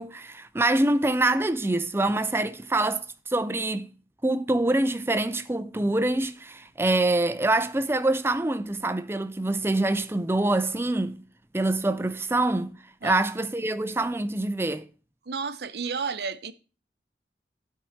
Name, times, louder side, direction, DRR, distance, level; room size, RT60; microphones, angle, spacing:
voice 1, 0.0-3.9 4.2-11.2 11.5-12.7 13.0-14.8, right 2 dB, 15° right, 0.5 m, -25 dB
voice 2, 15.3-16.5, right 5 dB, 65° right, 0.7 m, -32 dB
9.2 x 4.7 x 7.2 m
head